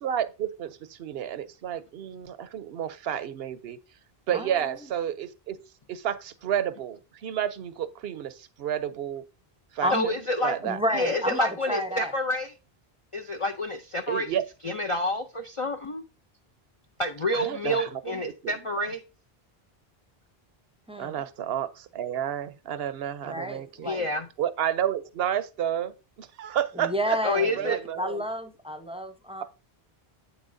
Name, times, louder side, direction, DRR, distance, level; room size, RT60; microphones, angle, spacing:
voice 1, 0.0-3.8 4.3-5.6 5.9-9.2 9.7-10.1 10.4-10.8 14.1-14.4 17.3-18.5 21.0-23.9 24.4-25.9 26.2-27.2 27.6-28.2, right 10 dB, 75° right, 0.9 m, -31 dB
voice 2, 4.3-4.8 9.8-10.1 10.6-12.1 20.9-21.2 23.2-24.1 26.7-29.4, equal, 5° right, 0.7 m, -31 dB
voice 3, 9.9-10.5 10.9-12.5 13.1-14.3 14.6-16.0 17.0-19.0 23.8-24.3 27.2-27.8, left 1 dB, 40° left, 0.6 m, -28 dB
8.4 x 7.2 x 2.6 m
omnidirectional pair, 1.0 m